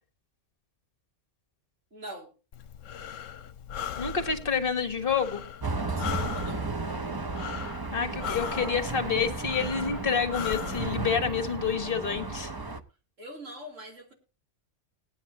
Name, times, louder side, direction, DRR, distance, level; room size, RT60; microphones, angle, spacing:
voice 1, 1.9-2.3 5.8-6.7 13.2-14.1, equal, 80° right, 3.2 m, -43 dB
Breathing, 2.5-10.9, left 9 dB, 80° left, 1.1 m, -39 dB
voice 2, 4.0-5.4 7.9-12.5, left 6 dB, 45° left, 1.6 m, -28 dB
sound 1, 5.6-12.8, right 3 dB, 25° right, 0.6 m, -34 dB
19.0 x 9.8 x 2.8 m
omnidirectional pair, 1.3 m